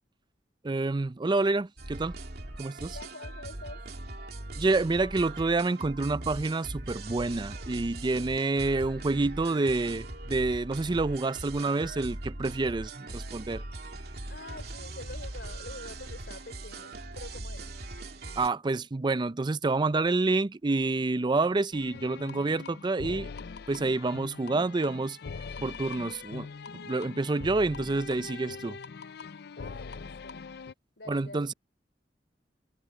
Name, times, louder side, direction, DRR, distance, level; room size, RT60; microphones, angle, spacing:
voice 1, 0.6-2.2 2.6-3.0 4.6-13.6 18.4-23.3 23.7-25.2 25.6-26.5 26.8-28.8 31.1-31.5, right 3 dB, 25° right, 0.4 m, -28 dB
sound 1, 1.8-18.5, right 2 dB, 65° right, 2.6 m, -40 dB
voice 2, 2.9-3.8 14.3-17.7 29.6-30.4 31.0-31.4, left 2 dB, 85° left, 3.4 m, -46 dB
sound 2, 21.7-30.7, left 5 dB, 65° left, 0.5 m, -42 dB
head